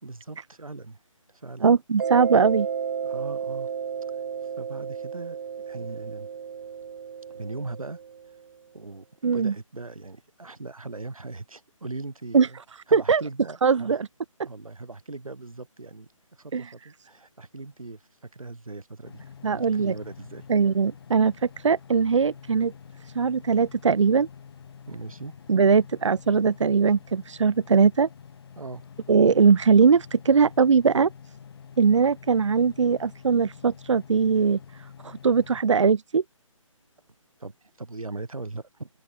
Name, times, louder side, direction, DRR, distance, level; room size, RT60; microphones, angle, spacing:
voice 1, 0.0-1.0 1.3-1.7 3.0-3.7 4.1-4.2 4.6-5.4 5.7-6.3 7.3-8.0 8.7-9.0 9.3-12.6 12.9-14.0 14.4-20.5 24.9-25.3 28.6-28.8 37.4-38.9, right 3 dB, 85° right, 4.4 m, -39 dB
voice 2, 1.6-2.7 9.2-9.5 12.3-12.5 12.9-13.2 13.6-14.1 16.5-16.7 19.4-19.9 20.5-22.7 23.1-24.3 25.5-28.1 29.1-31.1 31.8-34.6 35.0-36.2, right 5 dB, 60° right, 1.0 m, -20 dB
Mallet percussion, 2.0-8.4, right 7 dB, 45° right, 2.4 m, -33 dB
sound 1, 19.1-35.6, left 7 dB, 45° left, 5.8 m, -47 dB
open air
figure-of-eight pair, 155°, 17 cm